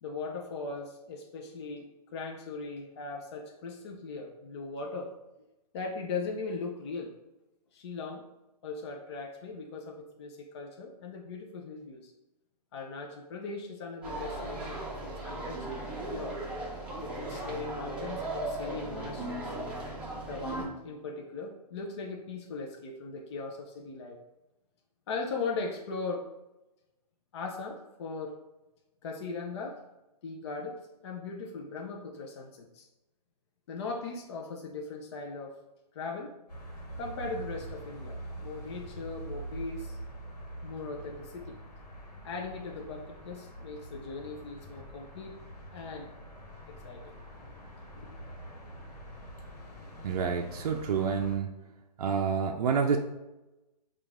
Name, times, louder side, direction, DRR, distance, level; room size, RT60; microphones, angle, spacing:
voice 1, 0.0-5.1 5.7-7.1 7.7-8.2 8.6-12.1 12.7-16.4 17.0-19.5 20.3-24.2 25.1-26.3 27.3-28.4 29.0-29.8 30.2-32.9 33.7-35.5 35.9-36.4 37.0-40.0 40.6-41.6 42.2-45.3 45.7-46.1 46.8-47.2 48.0-48.1, left 4 dB, 40° left, 1 dB, 0.5 m, -39 dB
sound 1, 14.0-20.6, right 2 dB, 5° right, 0.7 m, -37 dB
sound 2, 36.5-51.4, right 1 dB, 70° left, 1.3 m, -44 dB
voice 2, 50.0-51.5 52.0-53.0, right 6 dB, 60° right, 2 dB, 0.4 m, -28 dB
4.5 x 2.4 x 3.5 m, 0.98 s
hypercardioid pair, 140°, 21 cm